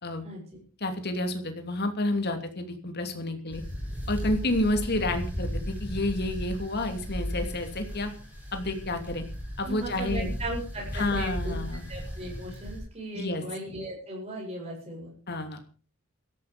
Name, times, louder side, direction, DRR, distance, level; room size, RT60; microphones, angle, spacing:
voice 1, 0.8-3.6 4.1-8.1 8.5-9.2 9.6-10.3 10.9-11.8 13.1-13.4 15.3-15.6, left 1 dB, 50° left, 6 dB, 2.9 m, -30 dB
sound 1, 3.5-12.8, equal, 10° right, 7.9 m, -35 dB
voice 2, 9.6-11.6 11.9-15.1, right 1 dB, 30° right, -2 dB, 7.8 m, -37 dB
17.0 x 13.5 x 5.3 m, 0.39 s
head